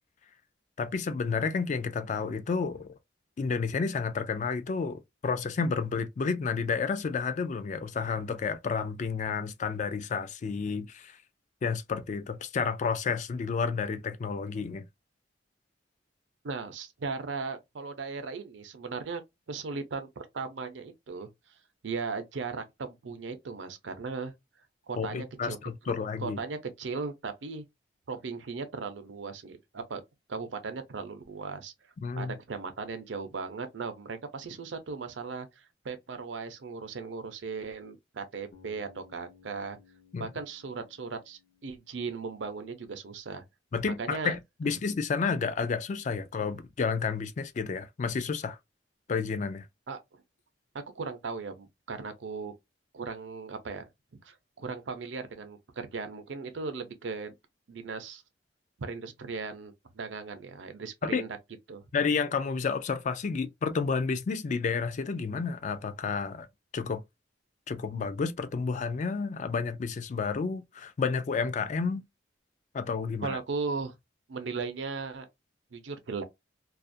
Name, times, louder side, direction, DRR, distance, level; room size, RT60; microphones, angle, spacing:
voice 1, 0.8-2.9 3.4-11.2 11.6-14.8 25.0-26.4 32.0-32.3 40.1-40.3 43.7-48.6 49.1-49.6 61.0-61.2 61.9-66.5 66.7-67.0 67.7-72.0 72.7-73.4, left 5 dB, 40° left, 0.3 m, -31 dB
voice 2, 16.4-19.2 19.5-20.1 20.3-21.3 21.8-24.3 24.9-25.6 26.2-27.6 28.1-30.0 30.3-31.7 32.2-39.8 40.2-43.4 43.9-44.3 44.7-44.8 49.9-50.0 50.7-52.5 52.9-53.9 54.2-57.3 57.7-58.2 58.8-61.3 61.7-61.8 73.2-73.9 74.3-75.3 75.7-76.2, right 4 dB, 80° right, 0.6 m, -37 dB
Bass guitar, 38.5-42.6, left 6 dB, 75° left, 0.6 m, -60 dB
2.4 x 2.0 x 2.5 m
head